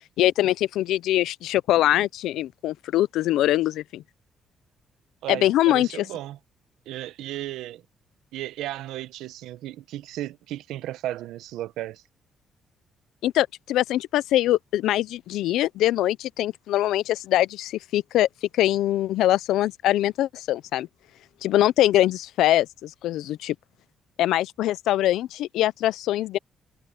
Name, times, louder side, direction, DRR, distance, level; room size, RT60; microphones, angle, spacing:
voice 1, 0.2-4.0 5.3-6.1 13.2-18.3 18.5-20.9 21.4-23.5 24.2-26.4, left 14 dB, 85° left, 0.5 m, -23 dB
voice 2, 5.2-6.4 6.9-7.8 8.3-12.0, right 14 dB, 90° right, 0.8 m, -34 dB
cardioid pair, 90°, 0 cm